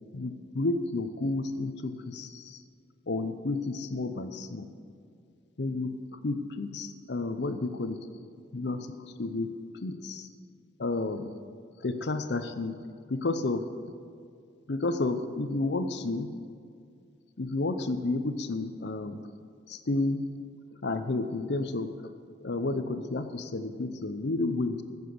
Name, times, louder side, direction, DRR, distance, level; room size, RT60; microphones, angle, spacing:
voice 1, 0.1-2.6 3.1-4.7 5.6-8.0 8.5-10.3 10.8-11.3 11.8-12.8 13.1-13.7 14.7-16.4 17.4-19.2 19.7-20.3 20.8-22.1 22.4-24.8, left 2 dB, 60° left, 9 dB, 0.7 m, -31 dB
14.5 x 7.9 x 6.7 m, 2.3 s
head